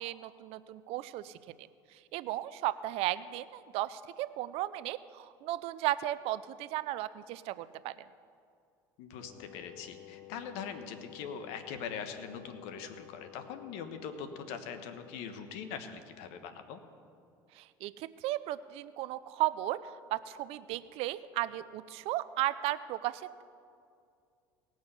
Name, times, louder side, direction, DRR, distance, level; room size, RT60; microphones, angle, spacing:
voice 1, 0.0-1.3 2.1-7.9 17.6-19.8 20.1-23.4, right 15 dB, 65° right, 15 dB, 0.5 m, -35 dB
voice 2, 9.0-16.8, left 7 dB, 70° left, 8 dB, 1.2 m, -42 dB
Wind instrument woodwind instrument, 9.2-15.8, left 15 dB, 55° left, 0.8 m, -53 dB
19.0 x 6.3 x 5.6 m, 2.4 s
hypercardioid pair, 80°, 11 cm